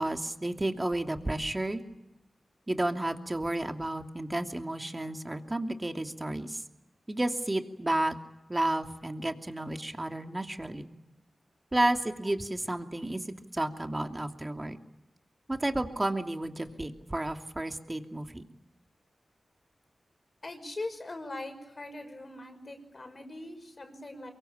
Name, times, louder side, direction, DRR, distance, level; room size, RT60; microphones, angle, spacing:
voice 1, 0.0-1.8 2.7-6.6 7.1-8.1 8.5-10.9 11.7-13.3 13.5-14.8 15.5-18.4, right 1 dB, 25° right, 5 dB, 2.8 m, -31 dB
voice 2, 20.4-24.3, left 2 dB, 50° left, 7 dB, 5.9 m, -41 dB
24.0 x 23.0 x 8.7 m, 0.93 s
cardioid pair, 45°, 0 cm